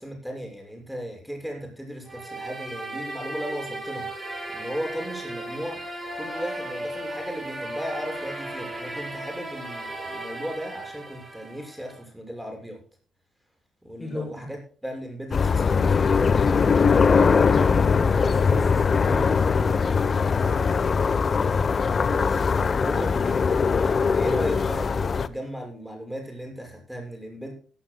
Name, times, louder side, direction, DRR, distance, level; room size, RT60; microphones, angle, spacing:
voice 1, 0.0-12.8 13.8-16.5 22.0-23.4 24.1-27.5, equal, ahead, 2 dB, 6.8 m, -36 dB
sound 1, 2.1-12.0, right 1 dB, 15° right, 6.5 m, -36 dB
voice 2, 14.0-14.5 17.1-20.6 24.2-24.4, left 1 dB, 15° left, -2 dB, 5.6 m, -34 dB
sound 2, 15.3-25.3, left 5 dB, 40° left, 0.8 m, -21 dB
17.0 x 15.5 x 2.3 m, 0.41 s
cardioid pair, 90°, 0 cm